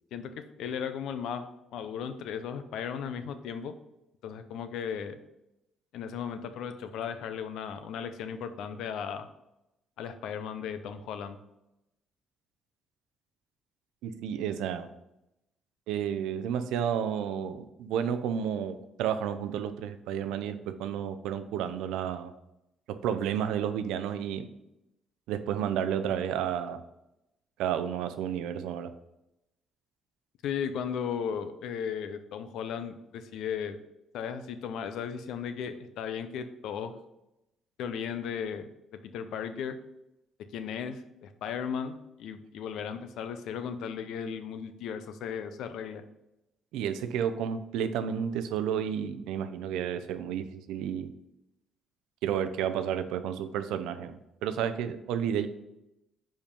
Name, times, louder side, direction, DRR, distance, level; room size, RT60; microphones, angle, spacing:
voice 1, 0.1-3.8 4.2-5.2 5.9-9.3 10.0-11.4 30.4-33.8 34.1-36.9 37.8-39.8 40.5-46.0, left 7 dB, 80° left, 10 dB, 0.6 m, -36 dB
voice 2, 14.0-14.9 15.9-22.3 22.9-24.5 25.3-26.8 27.6-28.9 46.7-51.1 52.2-55.5, right 8 dB, 90° right, 11 dB, 0.5 m, -31 dB
5.1 x 5.1 x 5.3 m, 0.89 s
cardioid pair, 85°, 0 cm